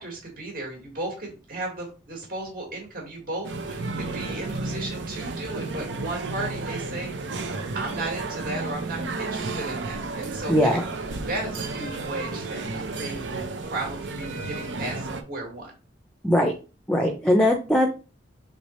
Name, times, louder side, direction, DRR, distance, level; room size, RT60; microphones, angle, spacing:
voice 1, 0.0-10.8 11.3-13.2 13.7-15.7, right 2 dB, 55° right, 0 dB, 1.4 m, -35 dB
sound 1, 3.4-15.2, right 3 dB, 90° right, 0.7 m, -32 dB
voice 2, 10.5-10.8 16.2-16.5 16.9-17.9, left 1 dB, 5° left, 3 dB, 0.5 m, -20 dB
3.7 x 3.3 x 4.1 m, 0.34 s
head